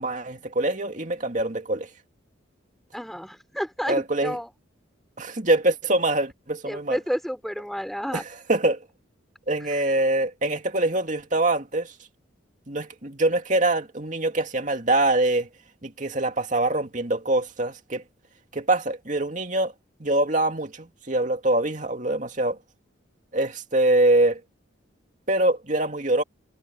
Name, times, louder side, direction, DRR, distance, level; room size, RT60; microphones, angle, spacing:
voice 1, 0.0-1.9 3.9-4.4 5.2-7.0 8.1-8.9 9.5-11.9 12.7-15.5 15.8-18.0 18.5-19.7 20.0-22.6 23.3-24.4 25.3-26.2, right 2 dB, 40° right, 2.5 m, -24 dB
voice 2, 2.9-4.5 6.7-8.2 9.7-9.8, equal, ahead, 4.0 m, -31 dB
head